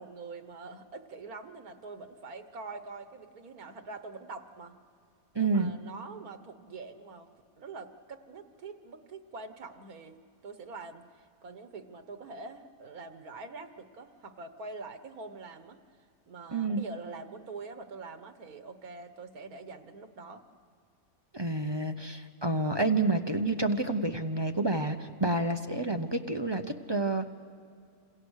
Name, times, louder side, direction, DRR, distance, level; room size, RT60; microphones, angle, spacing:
voice 1, 0.0-4.8 5.4-7.3 7.6-10.2 10.4-15.8 16.3-20.4, right 3 dB, 85° right, 8 dB, 1.8 m, -44 dB
voice 2, 5.3-5.7 16.5-16.8 21.3-27.3, right 2 dB, 20° right, 6 dB, 0.7 m, -29 dB
27.5 x 27.0 x 6.5 m, 2.4 s
omnidirectional pair, 1.5 m